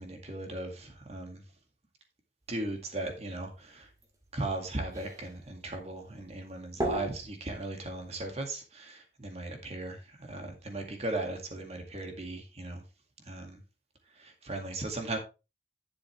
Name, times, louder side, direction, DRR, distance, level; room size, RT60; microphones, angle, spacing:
voice 1, 0.0-1.4 2.5-3.9 4.3-12.8 13.3-13.6 14.2-15.2, right 2 dB, 35° right, 3 dB, 2.1 m, -37 dB
sound 1, 2.4-8.2, right 1 dB, 20° right, 1.9 m, -41 dB
11.0 x 6.9 x 3.3 m, 0.29 s
head